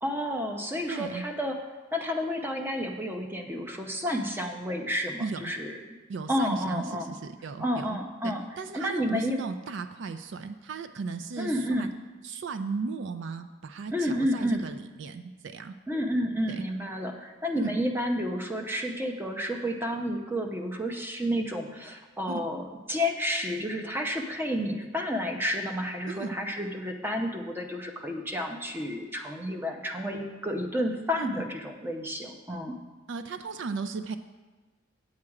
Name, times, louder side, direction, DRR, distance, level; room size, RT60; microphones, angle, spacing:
voice 1, 0.0-1.6 1.9-5.8 6.3-7.1 7.6-8.4 8.7-9.4 11.4-11.9 13.9-14.7 15.9-32.8, equal, 10° right, 3 dB, 0.7 m, -30 dB
voice 2, 0.9-1.2 5.2-5.5 6.1-8.0 8.2-11.9 12.2-15.8 16.5-16.6 17.6-17.7 22.3-22.4 26.1-26.4 31.2-31.3 33.1-34.2, right 4 dB, 60° right, 10 dB, 0.4 m, -36 dB
8.6 x 7.6 x 4.8 m, 1.2 s
head